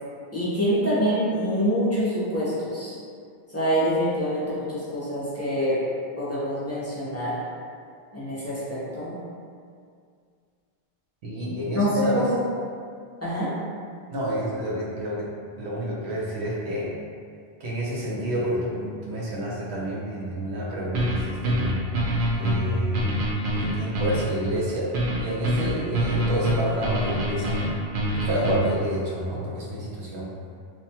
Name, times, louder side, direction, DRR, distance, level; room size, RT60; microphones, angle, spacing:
voice 1, 0.3-3.0 3.5-5.8 6.2-7.4 8.1-9.2 11.7-12.4 13.2-13.5, equal, 20° left, -10 dB, 0.4 m, -25 dB
voice 2, 11.2-12.3 14.1-15.3 15.5-16.9 17.6-21.8 22.4-23.0 23.6-24.9 25.2-27.6 28.1-30.3, equal, 85° right, -6 dB, 1.0 m, -29 dB
sound 1, 20.9-28.8, right 1 dB, 60° right, 0.7 m, -26 dB
2.9 x 2.2 x 2.7 m, 2.2 s
omnidirectional pair, 1.1 m